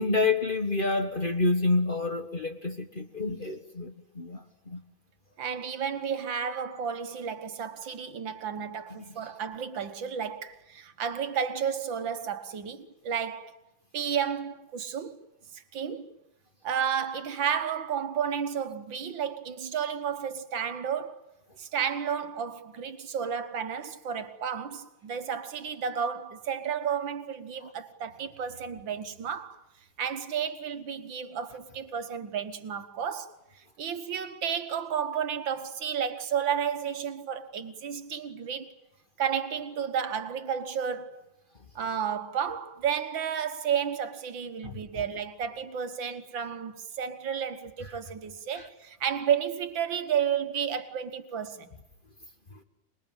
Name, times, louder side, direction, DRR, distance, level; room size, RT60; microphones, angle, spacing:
voice 1, 0.0-4.8 8.9-9.1 44.6-44.8 48.5-48.7, left 3 dB, 30° left, 1.5 m, -28 dB
voice 2, 5.4-13.6 13.9-15.2 15.5-16.1 16.6-21.2 21.6-29.6 30.0-38.7 39.2-41.2 41.8-51.7, right 8 dB, 70° right, 2.1 m, -32 dB
26.0 x 21.5 x 9.1 m
omnidirectional pair, 2.1 m